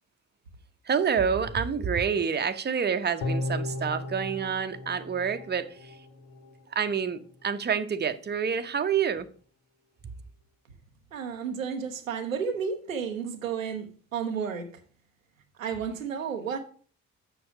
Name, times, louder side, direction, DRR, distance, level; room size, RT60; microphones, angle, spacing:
voice 1, 0.8-5.9 6.7-9.3, right 7 dB, 25° right, 0.8 m, -28 dB
sound 1, 3.2-6.5 6.9-7.0, left 2 dB, 70° left, 1.1 m, -35 dB
voice 2, 11.1-13.9 14.1-14.7 15.6-16.6, right 6 dB, 90° right, 0.6 m, -32 dB
7.0 x 6.2 x 4.9 m
figure-of-eight pair, 40°, 39 cm